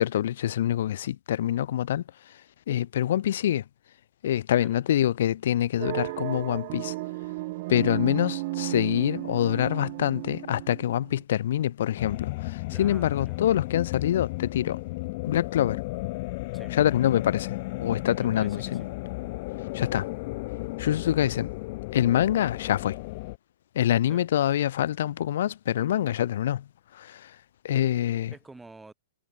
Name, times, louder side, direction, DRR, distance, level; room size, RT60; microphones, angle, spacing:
voice 1, 0.0-2.4 2.7-3.6 4.2-6.9 7.7-14.8 15.2-15.8 16.7-18.8 19.7-20.1 20.8-21.5 21.9-23.0 23.7-27.4 27.6-28.3, left 11 dB, 65° left, 1.2 m, -26 dB
sound 1, 5.8-11.2, right 22 dB, 45° right, 1.8 m, -34 dB
sound 2, 12.0-23.4, left 23 dB, 40° left, 0.7 m, -34 dB
voice 2, 12.7-13.4 16.5-16.7 18.2-18.9 24.1-24.2 28.3-28.9, right 3 dB, 5° right, 5.0 m, -48 dB
hypercardioid pair, 160°, 0 cm